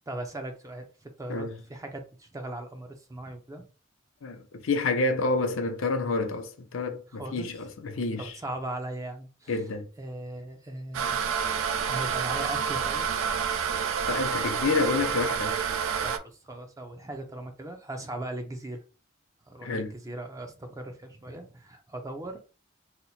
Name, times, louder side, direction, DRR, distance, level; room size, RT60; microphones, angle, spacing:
voice 1, 0.1-3.6 7.1-7.5 8.2-9.5 10.0-11.2 11.9-13.1 16.0-18.8 19.5-22.4, right 1 dB, 15° right, 0.4 m, -38 dB
voice 2, 1.3-1.6 4.2-8.3 9.5-9.9 14.1-15.6 19.6-19.9, left 3 dB, 80° left, 0.5 m, -29 dB
sound 1, 10.9-16.2, right 7 dB, 90° right, 0.4 m, -28 dB
2.8 x 2.0 x 4.1 m
head